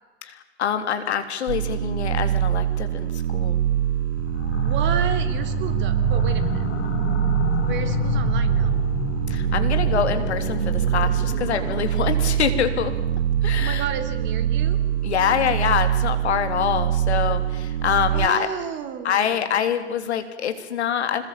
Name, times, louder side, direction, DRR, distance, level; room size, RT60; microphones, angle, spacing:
voice 1, 0.2-3.6 9.3-12.9 13.4-13.8 15.0-18.5 19.0-21.2, left 8 dB, 65° left, 9 dB, 3.4 m, -25 dB
sound 1, 1.5-18.3, right 11 dB, 60° right, 0.9 m, -24 dB
sound 2, 4.2-14.7, left 4 dB, 30° left, 5.8 m, -30 dB
voice 2, 4.5-6.7 7.6-8.8 13.6-14.8 18.1-19.5, right 8 dB, 30° right, 9 dB, 3.4 m, -32 dB
26.0 x 20.5 x 8.9 m, 1.3 s
figure-of-eight pair, 105°, 35 cm